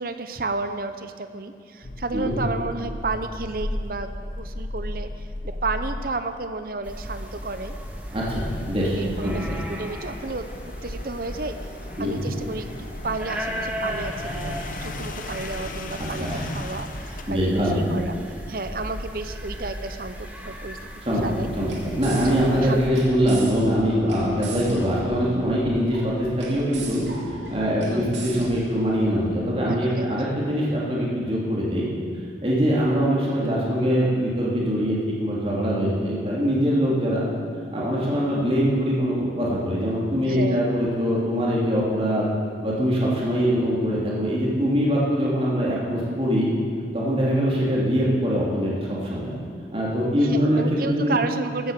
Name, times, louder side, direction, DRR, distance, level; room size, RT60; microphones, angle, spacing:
voice 1, 0.0-7.7 8.9-10.5 10.8-11.6 12.0-18.1 18.5-21.5 22.2-22.9 27.9-28.5 29.6-30.3 40.3-40.6 50.2-51.7, right 3 dB, 55° right, 9 dB, 0.8 m, -32 dB
sound 1, 1.8-6.5 7.9-17.8, left 1 dB, 45° left, 0.8 m, -36 dB
sound 2, 6.8-22.9, equal, 10° right, 1.7 m, -36 dB
voice 2, 8.1-9.0 9.2-9.4 12.0-12.2 16.2-16.4 17.3-17.8 21.0-21.2 21.6-27.0 27.5-31.9 32.4-37.3 37.7-42.3 42.6-46.5 46.9-48.7 49.0-49.3 49.7-51.2, equal, 30° right, -5 dB, 3.1 m, -23 dB
sound 3, 21.3-29.4, right 3 dB, 85° right, 2.5 m, -40 dB
15.0 x 9.4 x 6.7 m, 2.2 s
head